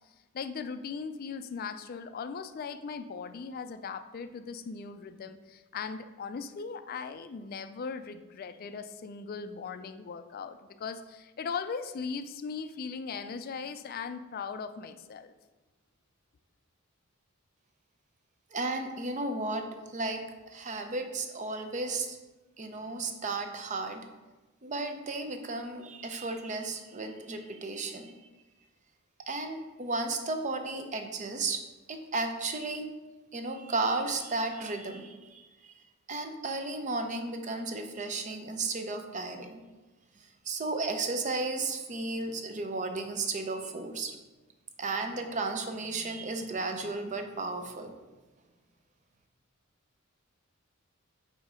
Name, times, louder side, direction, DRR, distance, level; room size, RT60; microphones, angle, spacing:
voice 1, 0.3-15.3, left 5 dB, 45° left, 10 dB, 0.3 m, -39 dB
voice 2, 18.5-22.2 22.6-24.0 24.6-28.2 29.3-31.6 31.9-32.9 33.3-35.8 36.1-39.6 40.5-44.1 44.8-47.9, right 3 dB, 35° right, 6 dB, 0.6 m, -34 dB
7.9 x 2.7 x 4.9 m, 1.2 s
head